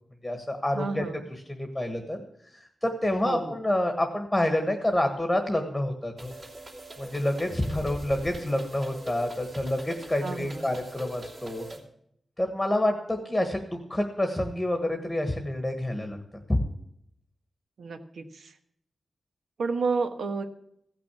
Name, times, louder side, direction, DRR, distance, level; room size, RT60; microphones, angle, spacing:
voice 1, 0.2-1.0 1.3-2.2 2.5-6.3 7.0-11.7 12.4-16.2 16.5-16.6, left 1 dB, 10° left, 5 dB, 1.3 m, -28 dB
voice 2, 0.7-1.2 3.2-3.6 10.2-10.7 17.8-18.5 19.6-20.4, right 4 dB, 75° right, 7 dB, 1.3 m, -31 dB
sound 1, 6.2-11.8, right 1 dB, 40° right, 3.1 m, -41 dB
16.0 x 6.1 x 8.3 m, 0.72 s
wide cardioid pair, 160°, 0 cm